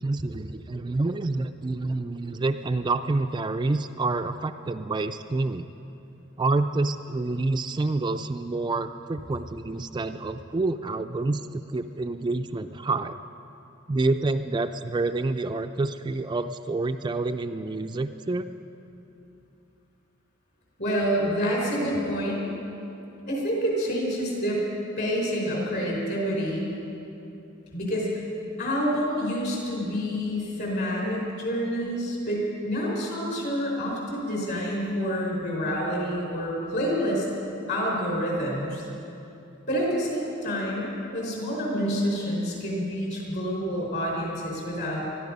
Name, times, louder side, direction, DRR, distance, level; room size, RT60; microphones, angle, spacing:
voice 1, 0.0-5.7 6.4-13.2 13.9-18.4, right 3 dB, 20° right, 8 dB, 0.4 m, -28 dB
voice 2, 20.8-22.4 23.3-24.7 25.0-26.7 27.7-28.2 28.6-37.3 37.7-38.8 39.7-45.0, equal, 55° left, -2 dB, 5.0 m, -28 dB
20.5 x 13.5 x 5.3 m, 2.9 s
head